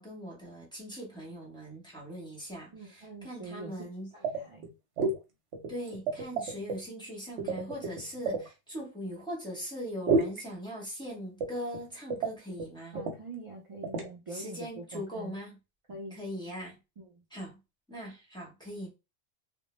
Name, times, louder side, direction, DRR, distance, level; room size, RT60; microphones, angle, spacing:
voice 1, 0.0-4.1 5.7-13.0 14.3-15.6 16.1-16.8 17.3-17.6 17.9-18.9, equal, 5° left, 0.7 m, -40 dB
voice 2, 2.7-3.7 4.1-4.7 12.9-15.4 15.9-16.2 17.0-17.2, right 3 dB, 50° right, 0.3 m, -44 dB
sound 1, 4.2-4.7 5.0-5.2 5.5-6.8 7.4-8.5 10.1-10.4 11.4-11.8 12.1-12.3 12.6-12.7 12.9-13.2 13.8-14.1, right 4 dB, 80° right, 1.0 m, -30 dB
2.1 x 2.0 x 3.0 m
omnidirectional pair, 1.2 m